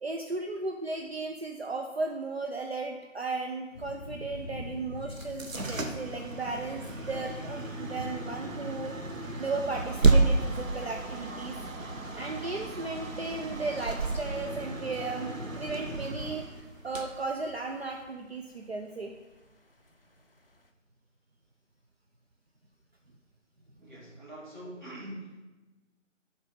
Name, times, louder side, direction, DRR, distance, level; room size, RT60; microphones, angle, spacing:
voice 1, 0.0-6.8 7.1-9.0 9.4-11.5 12.1-15.3 15.6-19.2, right 3 dB, 55° right, 2 dB, 0.5 m, -35 dB
sound 1, 3.7-20.7, left 2 dB, 50° left, 0.5 m, -48 dB
sound 2, 5.1-18.0, right 3 dB, 90° right, 0.9 m, -31 dB
voice 2, 23.8-25.4, right 1 dB, 35° right, -6 dB, 2.1 m, -43 dB
6.9 x 4.1 x 6.0 m, 1.1 s
figure-of-eight pair, 165°, 38 cm